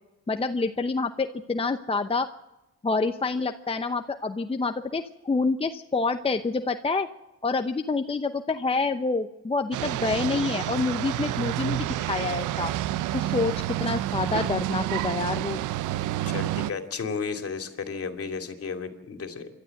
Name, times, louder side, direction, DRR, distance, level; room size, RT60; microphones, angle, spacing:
voice 1, 0.3-2.3 2.8-7.1 7.4-12.7 13.1-13.5 13.8-15.6, left 3 dB, 20° left, 7 dB, 0.8 m, -27 dB
sound 1, 9.7-16.7, right 14 dB, 85° right, 0.7 m, -29 dB
voice 2, 16.2-19.5, left 5 dB, 50° left, 6 dB, 2.7 m, -33 dB
27.5 x 12.0 x 7.8 m, 1.0 s
cardioid pair, 90°, 30 cm